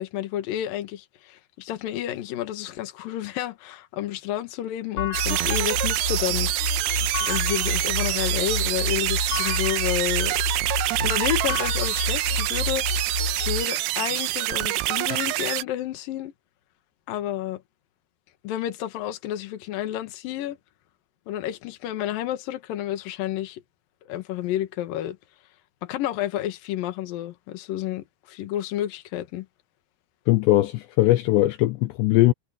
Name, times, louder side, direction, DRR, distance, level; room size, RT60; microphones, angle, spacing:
voice 1, 0.0-6.5 7.3-10.4 11.0-12.9 13.4-16.3 17.1-17.6 18.4-20.6 21.3-23.6 24.1-25.2 25.8-29.5, left 12 dB, 65° left, 2.5 m, -30 dB
sound 1, 5.0-13.6, left 3 dB, 30° left, 2.9 m, -29 dB
sound 2, 5.1-15.6, right 17 dB, 85° right, 3.6 m, -26 dB
voice 2, 30.3-32.3, left 17 dB, 80° left, 2.6 m, -20 dB
omnidirectional pair, 5.8 m